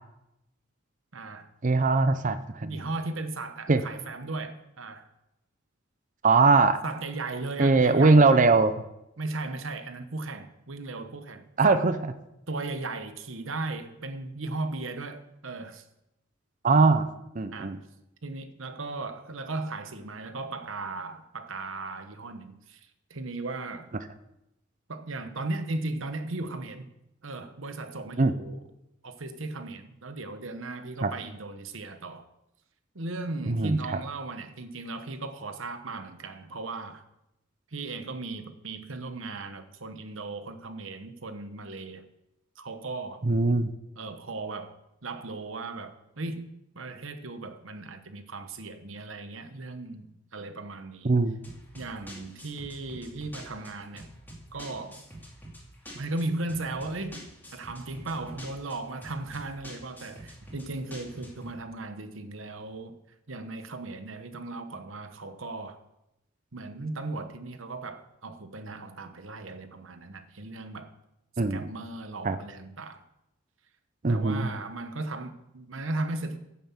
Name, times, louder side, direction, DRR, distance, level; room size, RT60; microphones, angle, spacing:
voice 1, 1.1-1.5 2.6-5.1 6.8-8.4 9.2-11.9 12.5-15.8 17.5-17.8 18.2-23.9 24.9-26.9 27.2-28.6 29.0-32.3 32.9-37.0 37.7-42.0 42.6-43.2 44.0-44.7 45.0-51.1 51.7-54.1 54.5-55.0 55.9-57.2 57.5-63.0 63.3-65.8 66.5-70.9 71.4-73.0 74.1-76.4, right 2 dB, 70° right, 1.1 m, -37 dB
voice 2, 1.6-2.7 3.7-3.8 6.2-6.8 7.6-8.7 11.6-11.9 16.6-17.1 17.3-17.8 28.2-28.3 31.0-31.1 33.5-33.8 43.2-43.7 51.0-51.4 71.4-71.7 72.2-72.4 74.0-74.5, right 3 dB, 40° right, 0.6 m, -21 dB
sound 1, 51.4-61.5, equal, 10° left, 2.6 m, -46 dB
10.0 x 7.6 x 7.2 m
head